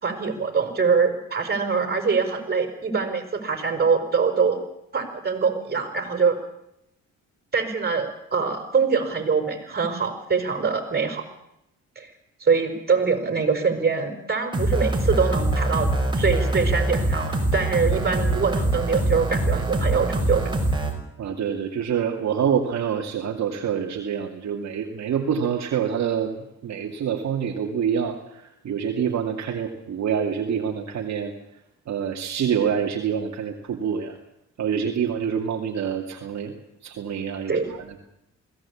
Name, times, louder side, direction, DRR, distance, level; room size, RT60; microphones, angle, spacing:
voice 1, 0.0-4.6 4.9-6.4 7.5-11.2 12.0-12.1 12.4-15.9 16.2-20.5 37.5-37.7, right 5 dB, 35° right, 6 dB, 5.4 m, -24 dB
sound 1, 14.5-20.9, right 2 dB, 15° right, 6.0 m, -23 dB
voice 2, 21.2-31.3 31.9-34.1 34.6-36.5 36.8-38.0, right 7 dB, 65° right, 1 dB, 2.5 m, -26 dB
21.5 x 17.0 x 8.6 m, 0.82 s
cardioid pair, 90°, 30 cm